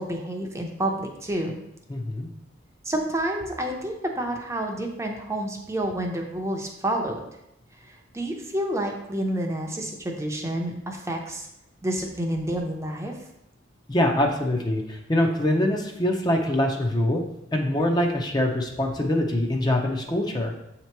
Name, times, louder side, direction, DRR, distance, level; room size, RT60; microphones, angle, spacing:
voice 1, 0.0-1.5 2.8-7.2 7.9-11.5 11.8-13.1, right 1 dB, 15° right, 1 dB, 0.6 m, -29 dB
voice 2, 1.9-2.3 13.9-17.2 17.5-20.5, left 1 dB, 20° left, 2 dB, 0.6 m, -24 dB
7.6 x 2.9 x 4.5 m, 0.82 s
head